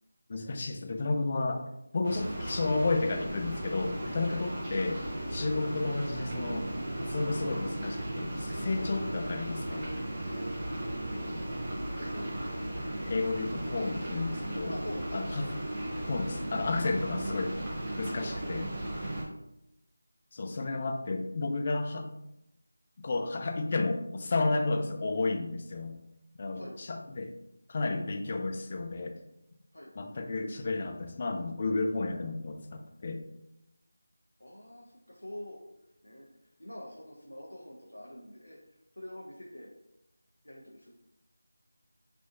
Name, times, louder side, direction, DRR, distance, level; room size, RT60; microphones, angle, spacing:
voice 1, 0.3-1.6 1.9-5.0 5.3-6.7 7.0-9.9 13.1-14.7 15.1-15.5 16.1-17.6 18.0-18.7 20.3-22.1 23.0-26.0 26.4-27.3 27.7-29.1 30.0-33.2, left 3 dB, 35° left, 5 dB, 0.3 m, -32 dB
sound 1, 2.0-19.2, right 1 dB, 25° right, 0.7 m, -36 dB
voice 2, 10.8-12.3 14.7-15.6 18.4-18.5 19.0-19.2 26.5-26.8 29.7-29.9 34.4-39.7 40.4-40.9, left 1 dB, 85° left, -3 dB, 0.6 m, -46 dB
3.4 x 2.5 x 2.4 m, 0.84 s
figure-of-eight pair, 170°, 0 cm